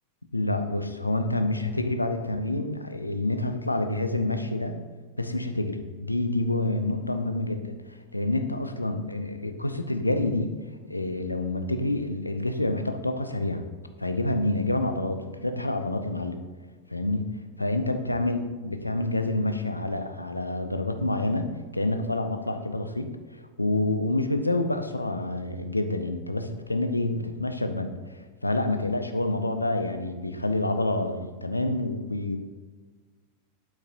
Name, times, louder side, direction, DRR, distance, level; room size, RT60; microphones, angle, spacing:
voice 1, 0.3-4.8 5.2-10.5 10.9-13.6 14.0-16.4 16.9-32.4, left 2 dB, 85° left, 7 dB, 0.6 m, -28 dB
8.6 x 8.0 x 2.6 m, 1.4 s
figure-of-eight pair, 90°, 0 cm